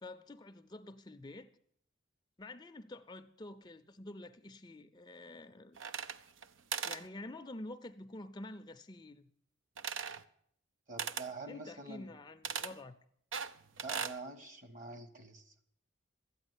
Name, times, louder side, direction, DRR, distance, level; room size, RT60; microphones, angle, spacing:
voice 1, 0.0-1.5 2.4-5.8 6.8-9.2 11.5-12.9, left 2 dB, 20° left, 0.5 m, -48 dB
sound 1, 5.8-6.5 6.7-7.0 9.8-10.2 11.0-11.3 12.4-12.7 13.3-14.2, right 6 dB, 75° right, 0.6 m, -38 dB
voice 2, 10.9-12.1 13.8-15.6, right 3 dB, 40° right, 1.6 m, -46 dB
13.0 x 8.9 x 9.6 m
head